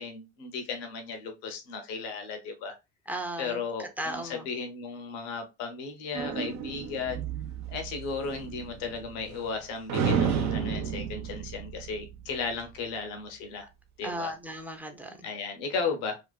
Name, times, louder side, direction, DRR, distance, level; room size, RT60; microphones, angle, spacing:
voice 1, 0.0-2.8 3.4-7.2 7.7-13.7 14.0-14.4 15.2-16.2, left 5 dB, 85° left, 0.7 m, -35 dB
voice 2, 3.1-3.6 4.0-4.5 14.0-15.2, right 1 dB, 5° right, 0.5 m, -35 dB
sound 1, 6.1-9.6 9.9-12.6, right 7 dB, 50° right, 0.6 m, -32 dB
2.5 x 2.4 x 2.3 m
supercardioid pair, 75°, 34 cm